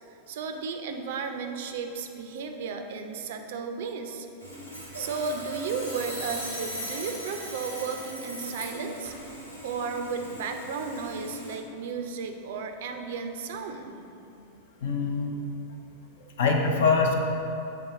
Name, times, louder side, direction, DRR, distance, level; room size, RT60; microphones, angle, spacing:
voice 1, 0.3-4.3 5.0-9.1 9.6-13.9, right 5 dB, 55° right, 5 dB, 0.4 m, -34 dB
Sawing, 4.4-11.6, equal, 85° left, 1.1 m, -39 dB
voice 2, 14.8-15.3 16.4-17.1, left 4 dB, 60° left, 2 dB, 0.6 m, -23 dB
7.6 x 3.5 x 3.8 m, 2.8 s
figure-of-eight pair, 90°, 0 cm